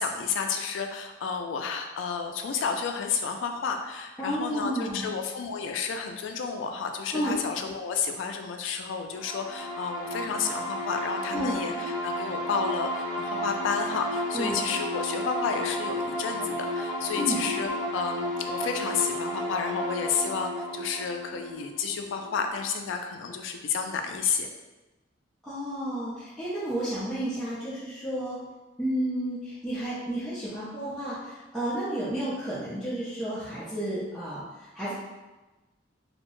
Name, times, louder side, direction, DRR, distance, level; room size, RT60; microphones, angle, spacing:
voice 1, 0.0-24.5, left 6 dB, 90° left, 5 dB, 0.3 m, -31 dB
voice 2, 4.2-5.1 7.1-7.3 11.3-11.5 14.3-14.6 17.2-17.4 25.4-28.4 28.8-34.9, right 1 dB, 5° left, -14 dB, 0.5 m, -31 dB
sound 1, 9.2-22.7, left 1 dB, 45° left, 0.6 m, -33 dB
2.7 x 2.1 x 3.0 m, 1.1 s
head